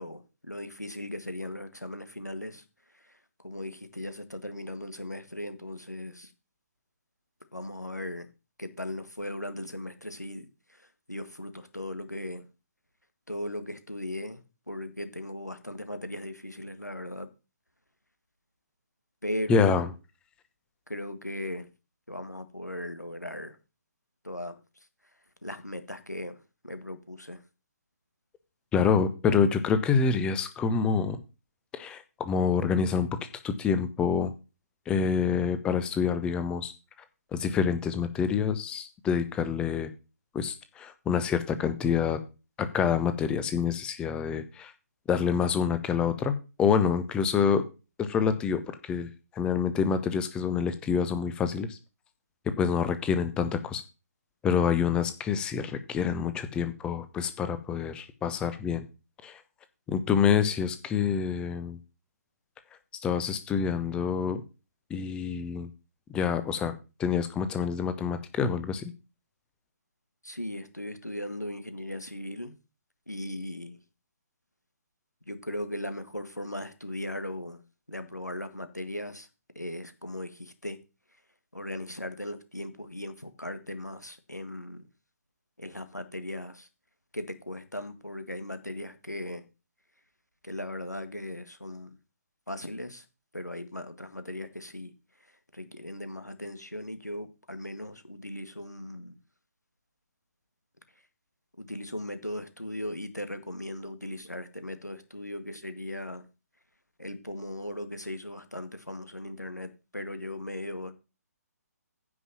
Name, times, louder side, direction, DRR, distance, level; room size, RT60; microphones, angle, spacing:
voice 1, 0.0-2.6 2.9-3.2 3.4-6.3 7.5-8.3 8.6-12.5 13.3-14.4 14.7-17.3 19.2-19.8 20.9-21.7 22.1-23.6 24.2-24.6 25.4-27.4 70.2-72.6 73.1-73.8 75.3-77.6 77.9-79.3 79.6-80.8 81.5-84.8 85.6-86.7 87.1-89.5 90.4-92.0 92.5-93.1 93.3-94.9 95.5-99.2 101.6-106.3 107.0-110.9, left 1 dB, 90° left, 1.8 m, -38 dB
voice 2, 19.5-19.9 28.7-31.2 31.7-33.1 33.4-34.3 34.9-36.7 37.3-39.9 40.3-42.2 42.6-44.7 45.1-46.3 46.6-47.6 48.0-48.6 48.9-51.8 52.6-53.8 54.4-58.8 59.2-59.4 59.9-61.8 63.0-64.4 64.9-65.7 66.1-68.9, left 6 dB, 10° left, 0.9 m, -27 dB
9.7 x 5.5 x 7.5 m
figure-of-eight pair, 135°, 9 cm